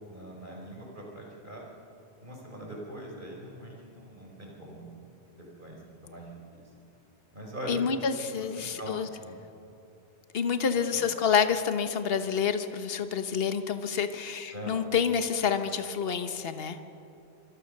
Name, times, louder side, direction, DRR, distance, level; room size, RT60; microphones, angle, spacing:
voice 1, 0.1-1.7 2.2-4.9 5.6-5.8 6.0-6.7 7.3-7.8 8.4-9.0 9.2-9.4 10.9-11.0 14.5-14.8, right 1 dB, 45° right, -1 dB, 5.0 m, -42 dB
voice 2, 7.7-9.1 10.3-16.8, left 6 dB, 60° left, 8 dB, 1.3 m, -28 dB
26.0 x 23.0 x 6.6 m, 2.7 s
omnidirectional pair, 1.1 m